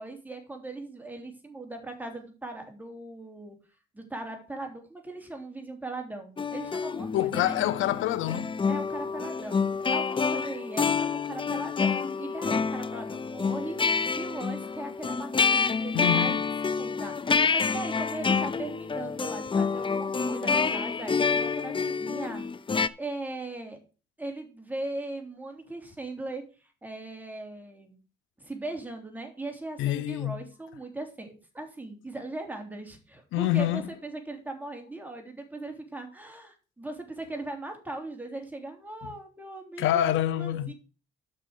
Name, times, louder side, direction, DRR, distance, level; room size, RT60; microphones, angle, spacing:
voice 1, 0.0-3.6 3.9-7.6 8.7-16.4 16.6-22.4 23.0-23.8 24.2-28.0 28.4-39.9 40.4-40.7, right 2 dB, 10° right, 3.3 m, -39 dB
sound 1, 6.4-22.9, left 5 dB, 25° left, 0.6 m, -28 dB
voice 2, 7.1-8.5 15.9-16.4 29.8-30.4 33.3-33.8 39.8-40.7, left 13 dB, 85° left, 0.7 m, -26 dB
8.7 x 6.2 x 6.4 m
cardioid pair, 90°, 20 cm